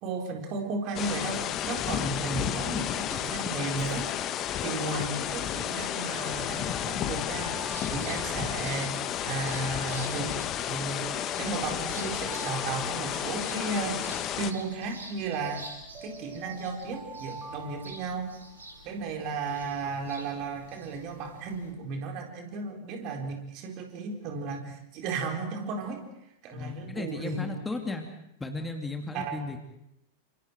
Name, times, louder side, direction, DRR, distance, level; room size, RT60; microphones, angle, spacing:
voice 1, 0.0-4.1 4.6-7.6 7.9-8.9 9.2-10.3 10.7-14.0 14.3-15.7 16.0-18.3 18.8-26.0 26.4-27.5 29.1-29.4, right 3 dB, 40° right, 3 dB, 4.3 m, -34 dB
sound 1, 0.9-14.5, left 11 dB, 35° left, 1.4 m, -32 dB
Alarm, 3.6-4.0 5.7-9.5 10.6-14.3 15.5-18.7, right 3 dB, 25° right, 2.4 m, -46 dB
sound 2, 7.7-21.7, right 2 dB, 75° right, 5.2 m, -49 dB
voice 2, 26.5-28.1 28.4-29.6, left 3 dB, 10° left, 4 dB, 2.6 m, -35 dB
30.0 x 27.0 x 4.8 m, 0.83 s
figure-of-eight pair, 90°, 0 cm